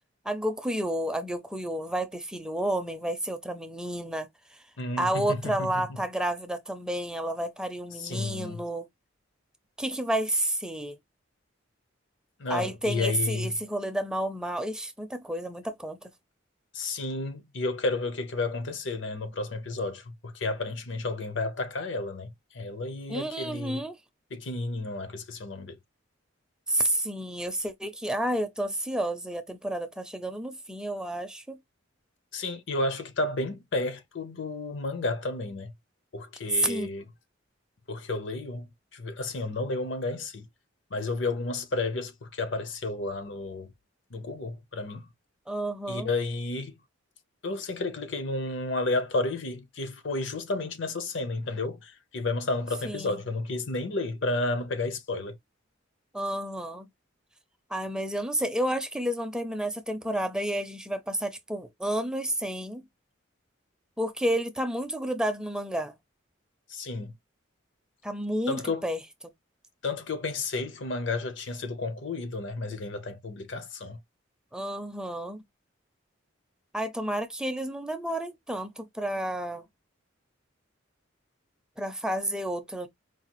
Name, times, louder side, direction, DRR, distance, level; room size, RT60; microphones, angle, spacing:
voice 1, 0.2-4.6 5.0-8.9 9.8-11.0 12.5-16.1 23.1-24.0 26.7-31.6 36.5-36.9 45.5-46.1 52.8-53.2 56.1-56.9 57.7-62.8 64.0-65.9 68.0-69.0 74.5-75.4 76.7-79.7 81.8-82.9, right 1 dB, 5° right, 0.5 m, -30 dB
voice 2, 4.8-5.7 8.0-8.6 12.4-13.5 16.7-23.8 24.3-25.8 32.3-35.7 36.1-37.0 37.9-40.4 40.9-43.7 44.1-45.0 45.9-46.7 47.4-55.4 66.7-67.1 68.5-68.9 69.8-74.0, left 2 dB, 65° left, 0.8 m, -32 dB
4.7 x 2.3 x 3.0 m
head